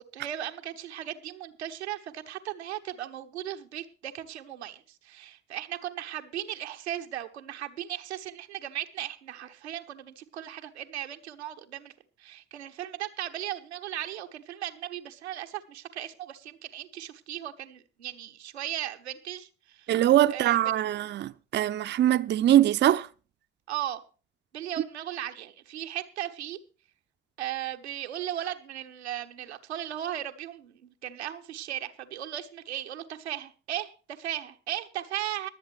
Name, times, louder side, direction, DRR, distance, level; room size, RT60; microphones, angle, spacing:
voice 1, 0.0-11.9 12.2-19.9 20.3-20.6 23.7-24.0 24.5-26.6 27.4-35.5, right 12 dB, 85° right, 0.7 m, -37 dB
voice 2, 19.9-23.1, right 12 dB, 35° right, 0.5 m, -22 dB
22.5 x 7.9 x 3.2 m
figure-of-eight pair, 50°, 32 cm